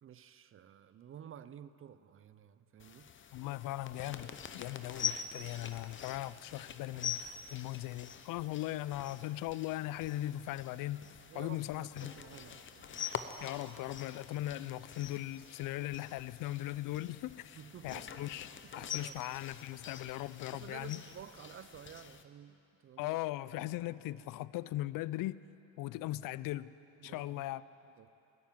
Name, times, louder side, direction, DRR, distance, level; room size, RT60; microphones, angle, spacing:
voice 1, 0.0-3.1 11.3-13.0 17.5-18.3 18.8-19.3 20.5-22.6 22.8-23.2 27.0-27.4 28.0-28.1, right 9 dB, 35° right, 14 dB, 0.5 m, -52 dB
sound 1, 2.8-22.2, left 7 dB, 35° left, 0.8 m, -45 dB
voice 2, 3.3-11.0 11.3-12.1 13.4-18.5 18.8-21.0 23.0-25.4 25.8-26.7 27.0-27.6, left 16 dB, 65° left, 18 dB, 0.5 m, -39 dB
14.0 x 9.5 x 9.1 m, 2.9 s
cardioid pair, 95°, 36 cm